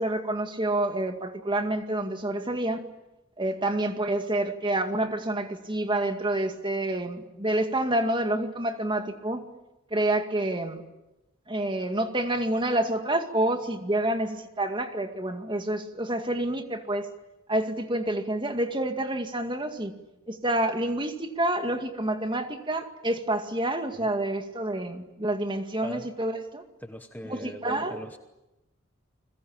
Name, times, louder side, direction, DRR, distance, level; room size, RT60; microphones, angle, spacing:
voice 1, 0.0-2.8 3.4-9.4 9.9-10.8 11.5-17.1 17.5-19.9 20.3-26.6 27.2-28.0, right 1 dB, 25° right, 6 dB, 2.1 m, -28 dB
voice 2, 26.8-28.2, left 1 dB, 10° left, 7 dB, 1.0 m, -41 dB
29.5 x 21.5 x 8.8 m, 0.97 s
head